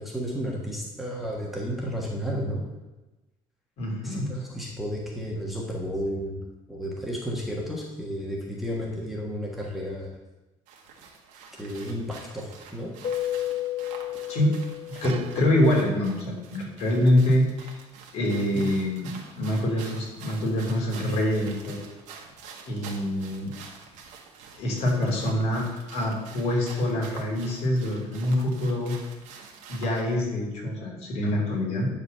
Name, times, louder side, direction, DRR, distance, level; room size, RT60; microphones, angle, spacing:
voice 1, 0.0-2.6 4.0-10.1 11.6-12.9 18.5-18.6, equal, ahead, -3 dB, 1.4 m, -32 dB
voice 2, 3.8-4.3 14.3-14.6 14.9-17.8 18.1-21.8 22.7-23.5 24.5-28.9 29.7-31.9, left 1 dB, 60° left, -1 dB, 3.0 m, -25 dB
sound 1, 10.7-30.1, right 5 dB, 85° right, 1.7 m, -47 dB
Keyboard (musical), 13.0-15.6, left 12 dB, 40° left, 0.6 m, -32 dB
sound 2, 15.0-16.3 17.1-17.2, right 8 dB, 50° right, 0.6 m, -41 dB
10.5 x 4.1 x 6.7 m, 1.1 s
cardioid pair, 165°, 12 cm